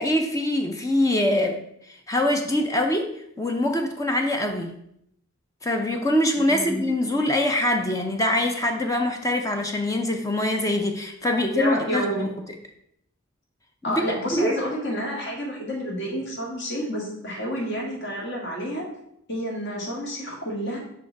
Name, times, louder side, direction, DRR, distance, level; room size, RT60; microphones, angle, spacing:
voice 1, 0.0-1.6 1.9-3.1 3.4-4.7 5.6-12.3 13.9-14.0 14.3-14.5, left 1 dB, 15° left, 4 dB, 0.5 m, -24 dB
voice 2, 6.3-6.9 11.5-12.3 13.8-18.8 19.3-20.8, equal, 50° left, -2 dB, 1.9 m, -29 dB
5.7 x 5.0 x 4.6 m, 0.75 s
head